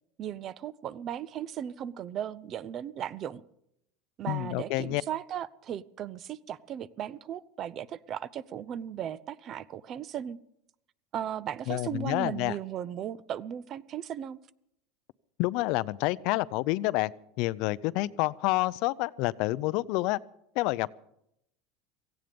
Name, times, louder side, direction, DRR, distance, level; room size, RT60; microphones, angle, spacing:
voice 1, 0.2-3.4 4.2-10.4 11.1-14.4, right 10 dB, 35° right, 20 dB, 0.6 m, -36 dB
voice 2, 4.3-5.0 11.7-12.6 15.4-17.1 17.4-20.2 20.6-21.0, left 19 dB, 60° left, 18 dB, 0.5 m, -28 dB
17.0 x 16.0 x 5.2 m, 0.76 s
supercardioid pair, 150°, 0 cm